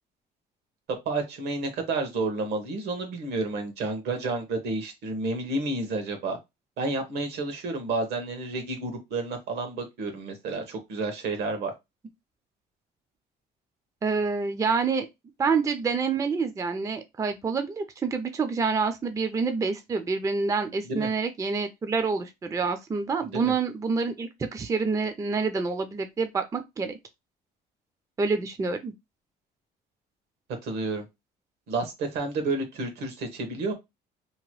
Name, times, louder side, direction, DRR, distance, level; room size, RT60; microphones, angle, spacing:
voice 1, 0.9-6.4 6.8-11.7 20.8-21.1 23.3-23.5 30.6-31.0 31.7-33.7, right 3 dB, 75° right, 1.0 m, -30 dB
voice 2, 14.0-15.1 15.4-27.0 28.2-28.9, right 4 dB, 20° right, 0.4 m, -27 dB
2.9 x 2.1 x 3.0 m
cardioid pair, 110°, 17 cm